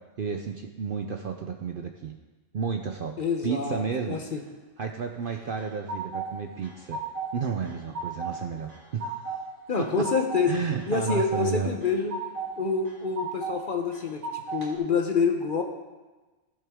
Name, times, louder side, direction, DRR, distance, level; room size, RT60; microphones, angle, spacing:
voice 1, 0.2-2.2 2.5-3.2 3.4-4.2 4.8-7.0 7.3-9.4 9.8-9.9 10.5-11.7, right 6 dB, 55° right, 4 dB, 0.6 m, -32 dB
voice 2, 3.2-4.4 9.7-10.6 10.9-12.1 12.6-15.6, left 5 dB, 45° left, 4 dB, 0.8 m, -27 dB
sound 1, 5.3-6.3 6.6-7.4 7.7-8.3 8.7-9.4 9.7-10.4 10.8-11.5 11.8-12.5 12.9-13.6 13.9-14.7, right 4 dB, 80° right, 1.9 m, -34 dB
15.0 x 6.7 x 3.5 m, 1.2 s
omnidirectional pair, 1.4 m